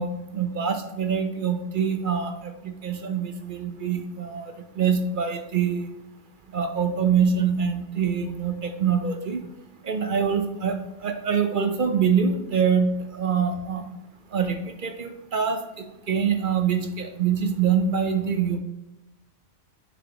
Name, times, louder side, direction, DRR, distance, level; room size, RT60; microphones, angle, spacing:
voice 1, 0.0-5.9 6.5-9.4 9.8-13.8 14.3-18.6, right 6 dB, 50° right, 7 dB, 0.7 m, -25 dB
6.7 x 6.4 x 2.9 m, 0.93 s
omnidirectional pair, 1.3 m